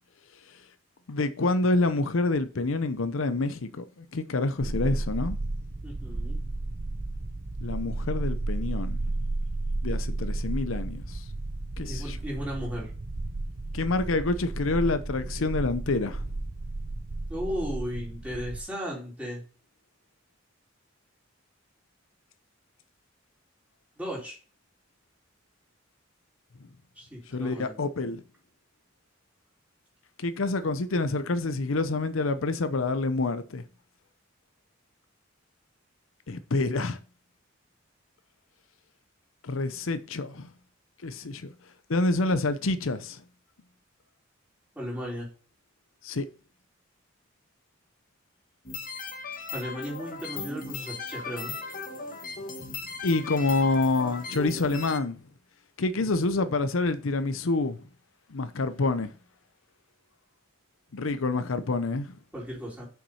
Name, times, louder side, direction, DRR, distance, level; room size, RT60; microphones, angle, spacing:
voice 1, 1.1-5.4 7.6-9.0 9.8-11.2 11.8-12.2 13.7-16.2 27.3-28.2 30.2-33.6 36.3-37.0 39.4-40.5 41.0-41.5 41.9-43.2 46.0-46.3 53.0-55.2 55.8-57.8 58.3-59.1 60.9-62.2, left 3 dB, 80° left, 0.7 m, -27 dB
sound 1, 4.6-18.6, right 2 dB, 50° right, 0.7 m, -33 dB
voice 2, 5.8-6.4 11.8-12.9 17.3-19.4 24.0-24.4 27.0-27.8 44.7-45.3 49.5-51.5 62.3-62.9, equal, 5° right, 4.1 m, -35 dB
sound 2, 48.6-55.0, left 4 dB, 45° left, 1.4 m, -37 dB
7.2 x 6.0 x 5.5 m
head